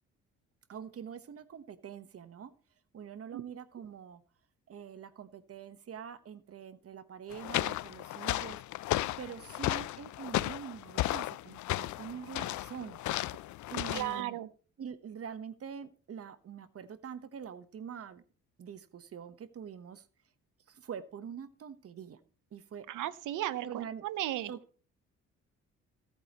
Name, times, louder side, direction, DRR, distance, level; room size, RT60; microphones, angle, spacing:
voice 1, 0.7-2.5 2.9-4.2 4.7-8.6 9.2-13.0 13.7-14.4 14.8-18.2 18.6-20.1 20.7-22.2 22.5-22.9 23.6-24.0 24.5-24.6, right 7 dB, 50° right, 13 dB, 1.1 m, -44 dB
sound 1, 7.3-14.2, left 16 dB, 70° left, 0.5 m, -34 dB
voice 2, 13.9-14.5 22.9-24.5, right 14 dB, 85° right, 16 dB, 0.9 m, -35 dB
17.5 x 8.6 x 3.0 m, 0.39 s
cardioid pair, 90°, 30 cm